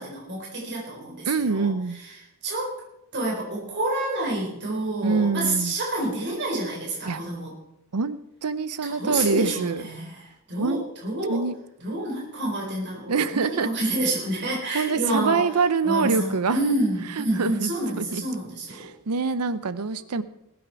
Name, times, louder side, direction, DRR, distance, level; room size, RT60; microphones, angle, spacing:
voice 1, 0.0-2.2 2.4-2.8 3.1-7.5 8.8-11.4 11.8-15.5 15.8-18.9, right 2 dB, 50° right, -3 dB, 4.3 m, -28 dB
voice 2, 1.3-2.0 5.0-5.7 7.1-7.2 7.9-9.8 10.6-10.8 11.3-11.5 13.1-13.7 14.7-16.6 17.2-17.7 18.0-18.2 18.8-20.2, right 4 dB, 90° right, 15 dB, 0.7 m, -25 dB
20.5 x 8.7 x 4.8 m, 0.86 s
head